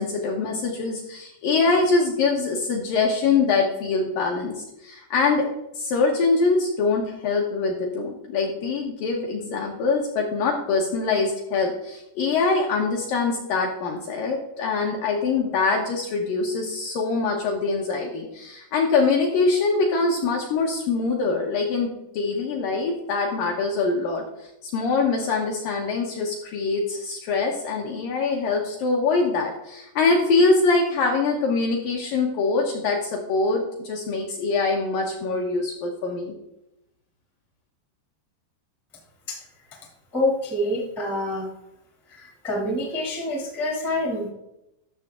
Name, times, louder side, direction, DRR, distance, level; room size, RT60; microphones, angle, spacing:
voice 1, 0.0-5.5 5.7-24.2 24.6-36.3, left 4 dB, 70° left, 1 dB, 2.1 m, -24 dB
voice 2, 40.1-41.5 42.1-44.3, left 1 dB, ahead, -1 dB, 0.5 m, -26 dB
13.0 x 6.6 x 3.6 m, 0.85 s
omnidirectional pair, 5.0 m